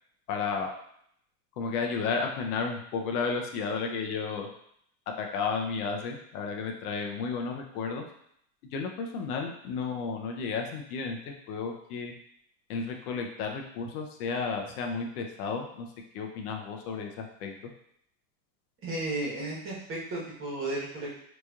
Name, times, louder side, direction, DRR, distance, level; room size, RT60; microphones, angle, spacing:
voice 1, 0.3-0.7 1.6-4.5 5.2-8.0 8.7-12.1 12.7-15.8 16.1-17.7, left 5 dB, 70° left, 3 dB, 0.8 m, -33 dB
voice 2, 18.8-21.2, right 2 dB, 25° right, -5 dB, 1.2 m, -34 dB
4.0 x 3.1 x 2.3 m, 0.70 s
supercardioid pair, 135°, 48 cm